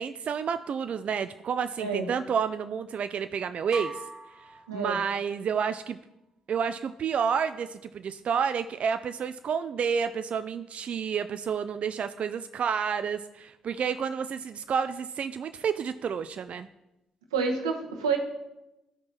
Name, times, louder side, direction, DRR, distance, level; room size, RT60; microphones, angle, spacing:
voice 1, 0.0-4.0 4.4-6.0 6.5-16.7, right 7 dB, 50° right, 10 dB, 0.3 m, -30 dB
voice 2, 1.8-2.1 4.7-5.0 17.3-18.2, right 5 dB, 90° right, 3 dB, 1.0 m, -28 dB
sound 1, 3.7-5.5, right 2 dB, 15° right, 1.3 m, -41 dB
13.0 x 5.3 x 2.9 m, 0.94 s
hypercardioid pair, 45°, 3 cm